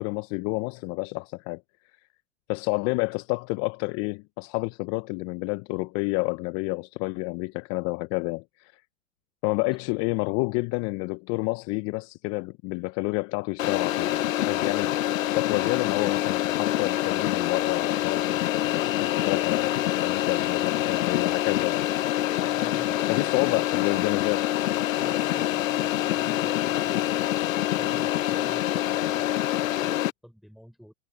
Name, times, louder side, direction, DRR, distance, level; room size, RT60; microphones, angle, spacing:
voice 1, 0.0-1.6 2.5-8.8 9.4-15.0 15.3-21.8 23.1-24.5, left 27 dB, 40° left, 0.7 m, -29 dB
sound 1, 13.6-30.1, left 14 dB, 75° left, 0.9 m, -26 dB
voice 2, 22.3-23.7 25.0-27.2 27.6-30.9, equal, ahead, 4.8 m, -47 dB
hypercardioid pair, 115°, 40 cm